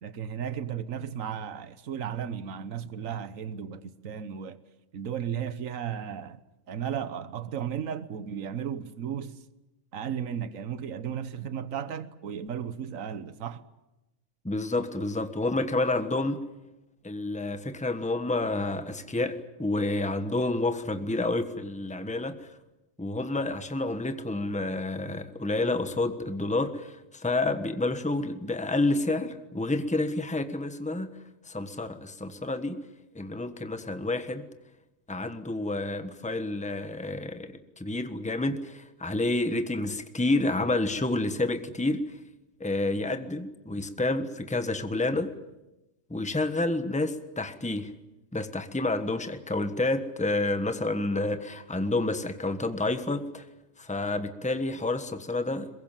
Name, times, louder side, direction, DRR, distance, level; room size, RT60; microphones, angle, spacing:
voice 1, 0.0-4.6 4.9-6.4 6.7-9.4 9.9-13.6, right 8 dB, 80° right, 1.4 m, -35 dB
voice 2, 14.4-16.4 17.0-22.5 23.0-31.1 31.4-32.8 33.1-34.4 35.1-42.0 42.6-45.3 46.1-47.9 48.3-53.4 53.8-55.7, left 2 dB, 5° left, 1.3 m, -29 dB
23.0 x 22.0 x 9.0 m
omnidirectional pair, 1.4 m